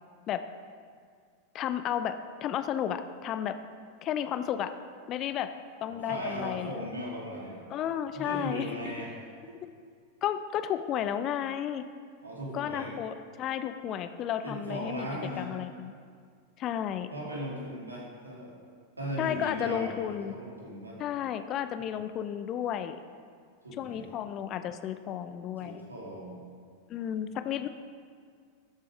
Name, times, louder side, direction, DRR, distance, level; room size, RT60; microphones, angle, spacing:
voice 1, 1.5-3.6 4.0-4.8 5.1-5.5 5.8-6.8 7.7-8.7 9.6-9.7 10.2-11.8 12.5-15.1 15.4-15.9 16.6-17.1 19.2-20.4 21.0-23.0 23.8-25.8 26.9-27.7, left 10 dB, 35° left, 11 dB, 0.5 m, -32 dB
voice 2, 5.9-7.7 8.1-9.1 12.2-12.9 14.4-15.5 17.1-18.5 19.0-21.0 21.8-21.9 23.6-24.1 25.6-26.4 27.3-27.4, equal, 80° right, -4 dB, 2.6 m, -38 dB
12.5 x 7.6 x 5.1 m, 2.1 s
figure-of-eight pair, 90°, 0 cm